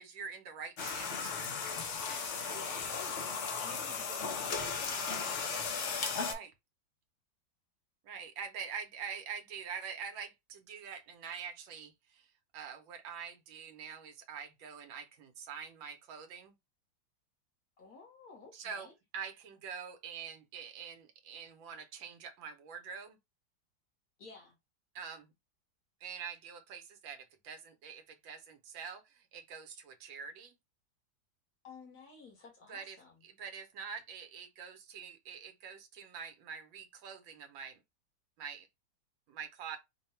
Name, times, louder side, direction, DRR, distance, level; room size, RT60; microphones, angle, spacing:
voice 1, 0.0-1.3 6.2-6.5 8.0-16.5 18.5-23.2 24.9-25.3 26.0-30.5 32.7-33.0 33.2-37.8 38.4-38.7 39.3-39.8, right 6 dB, 75° right, 1.4 m, -45 dB
sound 1, 0.8-6.3, left 5 dB, 70° left, 0.6 m, -36 dB
voice 2, 2.4-3.3 3.6-5.7 17.8-18.9 24.2-24.5 31.6-33.2, left 4 dB, 55° left, 1.5 m, -53 dB
3.7 x 2.2 x 4.2 m
omnidirectional pair, 2.2 m